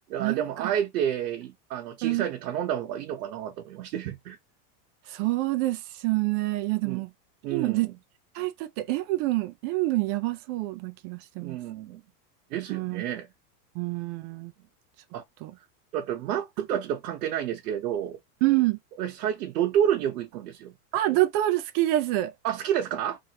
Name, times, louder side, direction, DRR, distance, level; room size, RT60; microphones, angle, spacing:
voice 1, 0.1-4.4 6.8-7.0 7.4-7.9 11.4-12.0 12.5-13.3 15.1-15.2 15.9-18.2 19.0-20.7 22.4-23.2, right 10 dB, 80° right, 1.0 m, -29 dB
voice 2, 5.1-7.1 7.5-7.9 8.4-11.6 12.7-13.0 13.8-14.5 15.4-15.5 18.4-18.8 20.9-22.3, right 17 dB, 40° right, 0.4 m, -26 dB
3.5 x 2.6 x 2.8 m
supercardioid pair, 140°, 47 cm